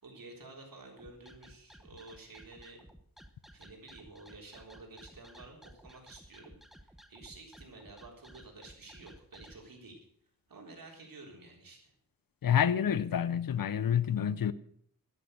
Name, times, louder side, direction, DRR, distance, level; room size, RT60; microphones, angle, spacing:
voice 1, 0.0-2.8 3.5-6.6 6.8-10.1 10.5-11.9, right 3 dB, 75° right, 3.8 m, -51 dB
sound 1, 1.0-9.6, equal, ahead, 0.8 m, -55 dB
voice 2, 12.4-14.5, left 9 dB, 75° left, 0.7 m, -28 dB
11.5 x 11.0 x 6.4 m
wide cardioid pair, 135°, 35 cm